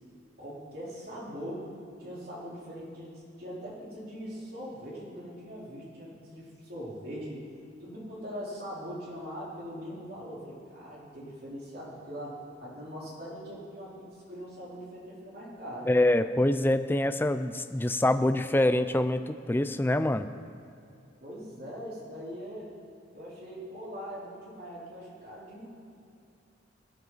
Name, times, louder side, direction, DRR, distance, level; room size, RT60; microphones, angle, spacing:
voice 1, 0.4-1.7 2.0-7.4 7.8-15.9 21.2-22.7 23.1-25.7, equal, 55° right, -6 dB, 4.0 m, -41 dB
voice 2, 15.9-20.3, left 1 dB, 10° left, 10 dB, 0.4 m, -25 dB
24.0 x 9.2 x 4.0 m, 2.5 s
head